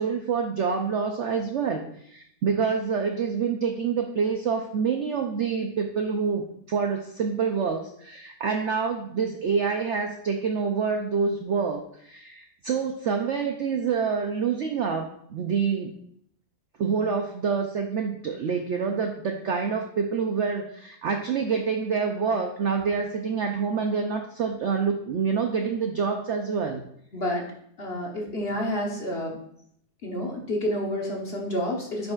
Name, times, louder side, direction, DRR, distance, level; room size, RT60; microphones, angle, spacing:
voice 1, 0.0-16.0 16.8-26.8, right 5 dB, 65° right, 4 dB, 0.7 m, -27 dB
voice 2, 27.1-27.5 27.8-29.4 30.0-32.1, left 1 dB, 45° left, 0 dB, 1.1 m, -29 dB
9.2 x 5.3 x 2.4 m, 0.68 s
omnidirectional pair, 1.8 m